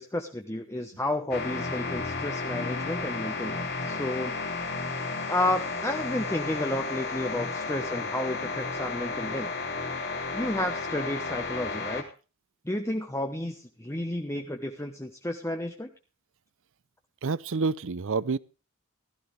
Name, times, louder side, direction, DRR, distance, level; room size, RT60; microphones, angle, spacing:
voice 1, 0.0-4.3 5.3-9.5 10.3-12.0 12.6-15.9, left 1 dB, 10° left, 1.1 m, -31 dB
sound 1, 1.3-12.0, left 3 dB, 45° left, 2.8 m, -33 dB
voice 2, 17.2-18.4, right 4 dB, 60° right, 0.6 m, -28 dB
16.0 x 13.5 x 3.3 m
head